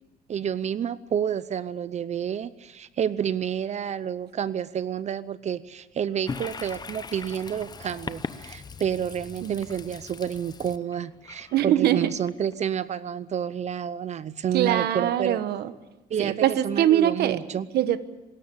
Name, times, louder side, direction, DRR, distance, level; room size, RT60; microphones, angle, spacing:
voice 1, 0.3-15.4 16.1-17.7, right 8 dB, 45° right, 16 dB, 0.7 m, -29 dB
Toilet flush, 6.3-12.8, left 4 dB, 25° left, 0.9 m, -40 dB
voice 2, 11.5-12.1 14.5-15.7 16.2-17.4 17.7-18.0, right 11 dB, 70° right, 13 dB, 1.3 m, -23 dB
24.5 x 13.5 x 8.6 m, 1.2 s
cardioid pair, 110°, 17 cm